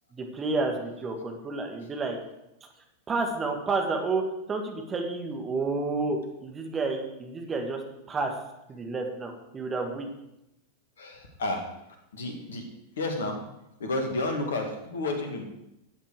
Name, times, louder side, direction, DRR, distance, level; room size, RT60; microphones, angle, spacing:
voice 1, 0.1-2.2 3.1-4.2 4.5-7.8 8.1-8.4 8.7-10.1, right 3 dB, 20° right, 3 dB, 2.3 m, -30 dB
voice 2, 11.0-11.7 12.1-12.6 13.0-13.4 13.8-15.5, left 2 dB, 65° left, 5 dB, 2.3 m, -31 dB
13.0 x 8.5 x 4.9 m, 0.87 s
figure-of-eight pair, 90°, 0 cm